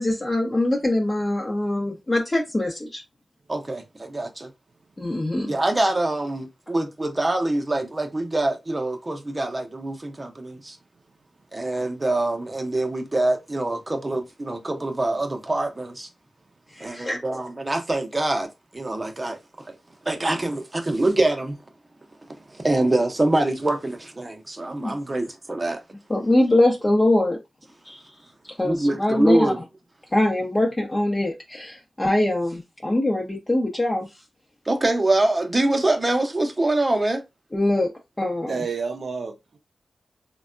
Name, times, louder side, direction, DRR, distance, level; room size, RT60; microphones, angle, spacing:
voice 1, 0.0-3.0 5.0-5.5 16.8-17.2 24.8-24.9 26.1-27.4 27.8-28.0 28.6-29.5 30.1-34.1 37.5-37.9 38.2-38.6, left 1 dB, 25° left, 0.7 m, -23 dB
voice 2, 3.5-4.5 5.5-10.8 11.5-16.1 16.8-19.8 20.0-21.6 22.5-25.8 28.6-29.6 34.7-37.2, right 2 dB, 30° right, 0.7 m, -24 dB
voice 3, 38.5-39.6, right 5 dB, 70° right, 0.5 m, -30 dB
3.3 x 2.2 x 2.4 m
cardioid pair, 50°, 0 cm